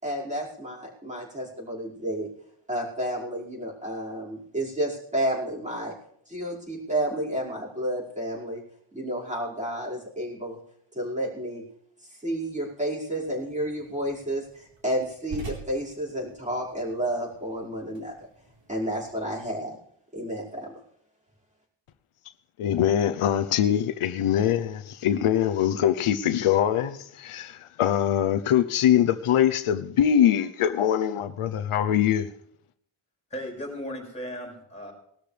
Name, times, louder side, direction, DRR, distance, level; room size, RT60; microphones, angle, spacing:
voice 1, 0.0-2.3 2.7-5.9 6.3-8.6 8.9-10.6 10.9-11.6 12.1-18.1 18.7-19.8 20.1-20.7, right 1 dB, 15° right, 5.4 m, -31 dB
sound 1, 13.2-19.5, right 4 dB, 60° right, 4.3 m, -46 dB
voice 2, 22.6-32.3, left 10 dB, 90° left, 0.9 m, -23 dB
voice 3, 33.3-34.9, equal, 15° left, 5.7 m, -36 dB
20.0 x 13.0 x 3.4 m
wide cardioid pair, 125°, 49 cm